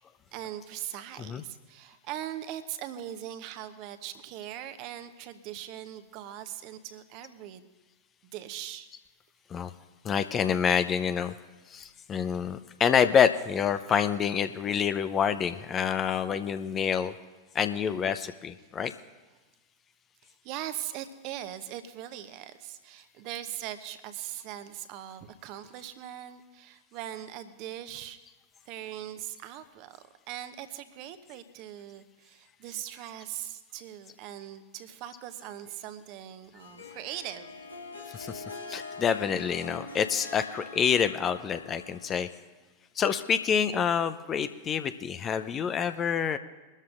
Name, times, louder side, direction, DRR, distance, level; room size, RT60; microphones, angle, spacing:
voice 1, 0.3-7.7 8.3-8.9 20.2-28.2 28.6-30.0 30.3-37.6, right 12 dB, 45° right, 10 dB, 0.9 m, -40 dB
voice 2, 10.0-11.3 11.7-17.1 17.5-18.9 38.1-42.3 43.0-46.4, left 7 dB, 25° left, 10 dB, 0.6 m, -27 dB
Harp, 36.6-42.4, left 3 dB, 80° left, 1.8 m, -44 dB
22.5 x 13.0 x 2.5 m, 1.2 s
figure-of-eight pair, 90°, 0 cm